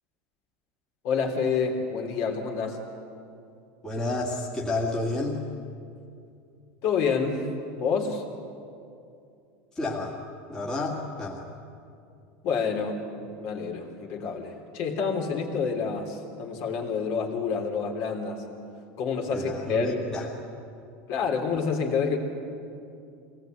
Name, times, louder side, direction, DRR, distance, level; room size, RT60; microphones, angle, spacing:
voice 1, 1.0-2.8 6.8-7.4 7.8-8.2 12.4-18.4 19.0-20.0 21.1-22.2, left 5 dB, 45° left, 3 dB, 3.3 m, -28 dB
voice 2, 3.8-5.4 9.8-10.2 10.5-11.5 19.3-20.3, left 2 dB, 10° left, -4 dB, 2.2 m, -30 dB
24.5 x 19.0 x 9.2 m, 2.5 s
supercardioid pair, 170°, 7 cm